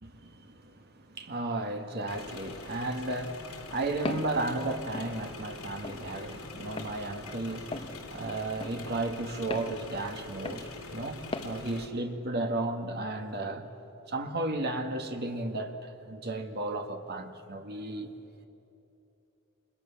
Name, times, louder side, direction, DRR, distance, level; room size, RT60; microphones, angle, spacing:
voice 1, 0.0-13.7 14.1-18.1, right 2 dB, 45° right, 1.9 m, -34 dB
sound 1, 2.1-11.9, left 3 dB, 70° left, 3.7 m, -45 dB
Walk footsteps, 4.1-4.3 4.9-5.1 5.8-6.0 6.8-6.9 7.7-7.9 8.6-8.8 9.5-9.7 10.5-10.7 11.3-11.5, left 2 dB, 25° left, 1.1 m, -36 dB
29.5 x 26.0 x 7.2 m
head